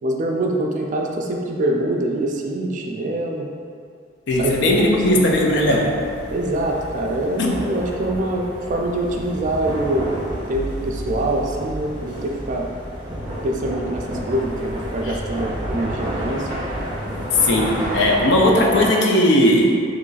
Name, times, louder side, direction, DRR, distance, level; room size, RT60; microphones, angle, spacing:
voice 1, 0.0-3.5 4.4-5.3 6.3-10.1 10.5-12.7 13.4-16.5, right 1 dB, 40° right, 0 dB, 0.3 m, -24 dB
voice 2, 4.3-6.0 7.4-7.5 15.0-15.2 17.4-19.8, left 1 dB, 65° left, 0 dB, 0.4 m, -17 dB
sound 1, 4.3-18.9, equal, 25° right, 0.7 m, -30 dB
3.1 x 2.4 x 3.9 m, 2.4 s
head